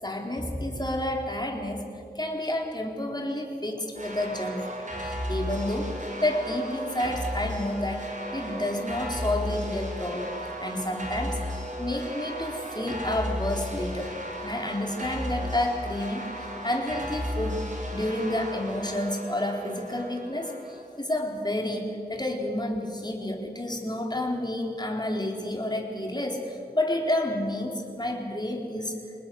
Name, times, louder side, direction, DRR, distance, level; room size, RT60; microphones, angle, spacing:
voice 1, 0.0-1.8 2.1-4.6 5.0-5.9 6.2-10.3 10.6-14.1 14.4-17.6 17.9-29.0, left 1 dB, 25° left, 2 dB, 4.1 m, -30 dB
sound 1, 3.9-20.8, equal, 50° right, 5.0 m, -35 dB
25.5 x 20.0 x 7.9 m, 2.5 s
wide cardioid pair, 50°, 17 cm